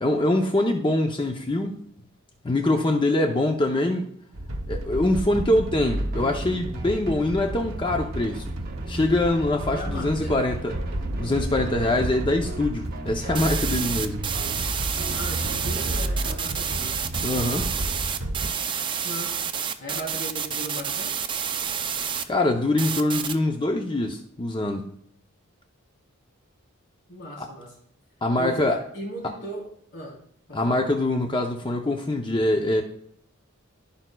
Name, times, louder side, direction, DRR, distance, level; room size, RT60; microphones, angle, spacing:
voice 1, 0.0-1.8 2.4-4.1 4.7-8.4 8.9-10.8 11.2-14.2 17.2-17.7 22.3-24.9 27.4-27.5 28.2-28.8 30.5-32.8, left 1 dB, 25° left, 3 dB, 0.6 m, -24 dB
sound 1, 4.3-18.5, right 1 dB, 90° right, 0.8 m, -33 dB
sound 2, 5.9-16.4, right 1 dB, 45° right, 1.0 m, -34 dB
voice 2, 9.7-10.4 15.1-16.9 19.0-19.4 19.8-21.2 27.1-27.7 28.4-29.7 29.9-30.2 30.5-30.9, equal, 60° left, -5 dB, 3.4 m, -37 dB
sound 3, 13.3-22.2 22.8-23.3, right 7 dB, 25° right, 0.4 m, -29 dB
15.5 x 5.2 x 2.3 m, 0.66 s
head